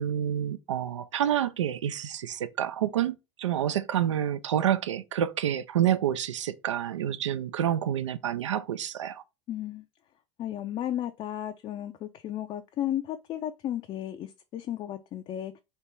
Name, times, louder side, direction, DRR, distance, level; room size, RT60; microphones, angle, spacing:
voice 1, 0.0-9.2, right 10 dB, 80° right, 0.4 m, -28 dB
voice 2, 9.5-9.8 10.4-15.6, left 11 dB, 35° left, 0.4 m, -34 dB
3.4 x 2.8 x 4.4 m
hypercardioid pair, 80°, 15 cm